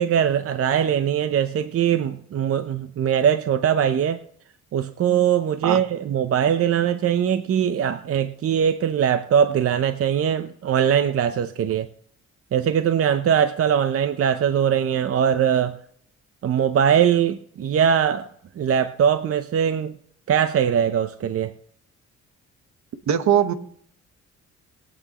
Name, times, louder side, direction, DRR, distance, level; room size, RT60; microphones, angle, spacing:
voice 1, 0.0-4.2 4.7-11.9 12.5-15.8 16.4-18.3 18.6-19.9 20.3-21.5, right 8 dB, 50° right, 0.7 m, -21 dB
voice 2, 23.1-23.5, right 9 dB, 65° right, 1.2 m, -20 dB
21.0 x 8.7 x 3.0 m
cardioid pair, 90°, 30 cm